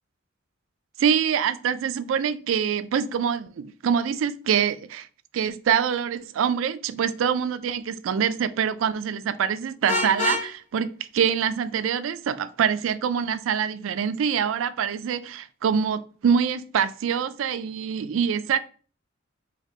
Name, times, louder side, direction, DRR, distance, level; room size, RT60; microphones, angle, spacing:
voice 1, 1.0-5.1 5.3-18.6, right 7 dB, 80° right, 0.3 m, -25 dB
Vehicle horn car horn honking, 9.9-10.5, left 2 dB, 40° left, 0.8 m, -25 dB
4.1 x 2.9 x 3.0 m
head